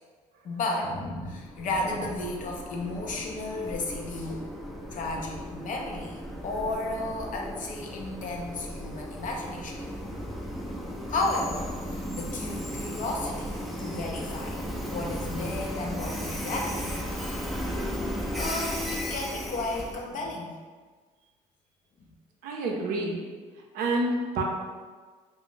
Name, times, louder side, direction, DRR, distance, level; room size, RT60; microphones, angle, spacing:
voice 1, 0.4-4.5 4.9-9.8 11.1-17.5 18.3-20.6, left 2 dB, 55° left, 0 dB, 0.5 m, -33 dB
Train, 1.3-20.1, equal, ahead, 0.4 m, -35 dB
voice 2, 22.4-23.2 23.7-24.4, right 2 dB, 70° right, 1 dB, 0.5 m, -28 dB
2.4 x 2.0 x 3.7 m, 1.5 s
hypercardioid pair, 60°, 16 cm